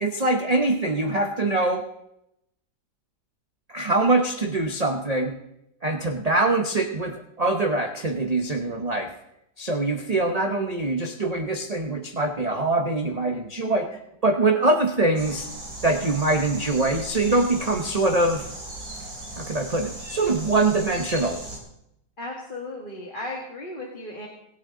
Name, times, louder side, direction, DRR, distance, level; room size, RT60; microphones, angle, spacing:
voice 1, 0.0-1.8 3.7-5.4 5.8-9.1 9.6-15.5 15.8-18.5 19.4-21.4, right 2 dB, 35° right, 4 dB, 0.6 m, -23 dB
sound 1, 15.2-21.6, right 1 dB, 50° right, 3.6 m, -37 dB
voice 2, 22.2-24.3, left 2 dB, 25° left, -2 dB, 1.8 m, -35 dB
25.5 x 9.0 x 3.8 m, 0.81 s
omnidirectional pair, 2.1 m